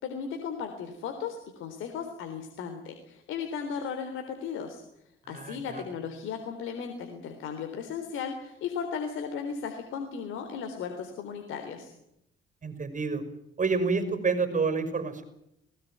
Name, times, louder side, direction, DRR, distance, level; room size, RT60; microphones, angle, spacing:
voice 1, 0.0-4.8 5.3-11.9, left 6 dB, 85° left, 6 dB, 3.7 m, -36 dB
voice 2, 5.3-5.9 12.6-13.2 13.6-15.2, right 4 dB, 40° right, 11 dB, 5.8 m, -28 dB
21.0 x 19.0 x 9.3 m, 0.81 s
cardioid pair, 90°, 20 cm